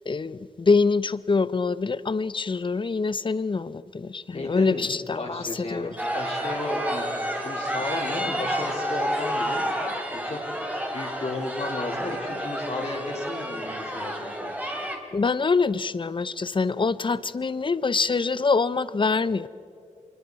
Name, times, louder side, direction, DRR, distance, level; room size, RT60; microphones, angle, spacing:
voice 1, 0.1-6.0 15.1-19.5, left 4 dB, 40° left, 0.7 m, -25 dB
voice 2, 4.3-4.8 5.1-14.5, left 2 dB, 60° left, 3.9 m, -34 dB
sound 1, 6.0-15.0, equal, 10° right, 3.2 m, -30 dB
25.5 x 22.0 x 4.8 m
cardioid pair, 70°, 13 cm